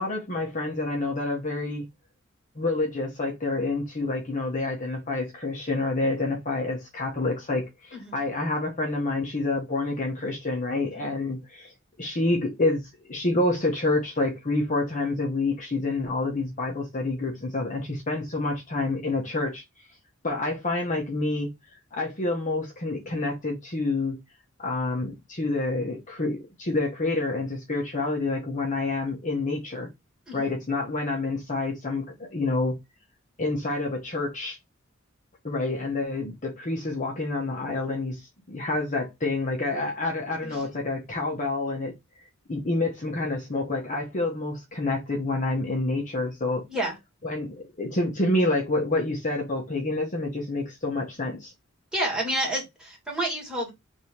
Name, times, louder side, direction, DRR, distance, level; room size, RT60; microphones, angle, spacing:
voice 1, 0.0-1.9 2.6-11.7 12.0-12.8 13.1-19.6 20.2-21.5 21.9-24.1 24.6-29.9 30.3-32.7 33.4-34.6 35.4-38.2 38.5-41.9 42.5-46.6 47.2-51.5, left 2 dB, 40° left, 1.0 m, -28 dB
voice 2, 40.4-40.8 46.7-47.0 51.9-53.7, right 1 dB, 5° right, 2.0 m, -29 dB
3.4 x 2.7 x 4.3 m
head